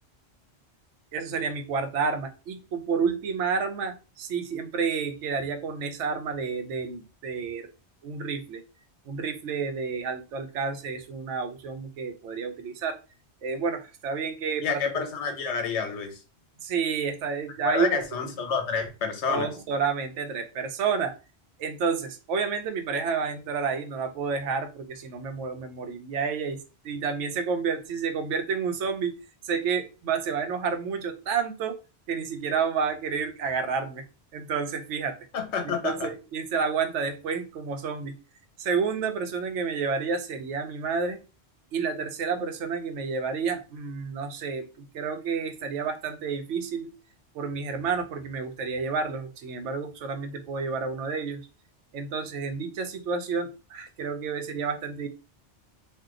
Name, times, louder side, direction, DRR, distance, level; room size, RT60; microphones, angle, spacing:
voice 1, 1.1-7.7 8.0-8.6 9.1-13.0 13.4-15.0 16.6-18.0 19.3-21.1 21.6-26.6 26.8-29.2 29.4-31.8 32.1-34.0 34.3-35.2 35.6-38.2 38.6-41.2 41.7-46.9 47.3-51.4 51.9-55.1, right 5 dB, 90° right, 7 dB, 0.9 m, -30 dB
voice 2, 14.6-16.2 17.6-19.5 35.3-36.1, left 6 dB, 75° left, 5 dB, 1.0 m, -29 dB
2.7 x 2.2 x 3.6 m, 0.31 s
omnidirectional pair, 1.2 m